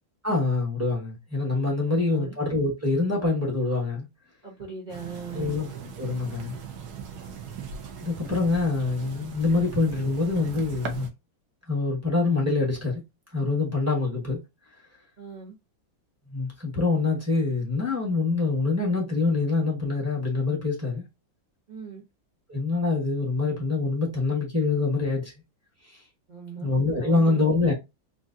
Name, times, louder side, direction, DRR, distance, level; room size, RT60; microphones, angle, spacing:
voice 1, 0.2-4.1 5.3-5.7 6.0-6.6 8.0-11.1 11.7-13.0 13.3-14.4 16.3-21.0 22.5-25.3 25.9-26.0 26.6-27.7, left 3 dB, 15° right, 0.6 m, -25 dB
voice 2, 4.4-5.6 15.2-15.5 21.7-22.0 26.3-26.7 27.0-27.7, right 5 dB, 80° right, 0.4 m, -39 dB
sound 1, 4.9-11.1, right 6 dB, 65° right, 1.1 m, -39 dB
3.9 x 2.5 x 2.5 m
omnidirectional pair, 2.1 m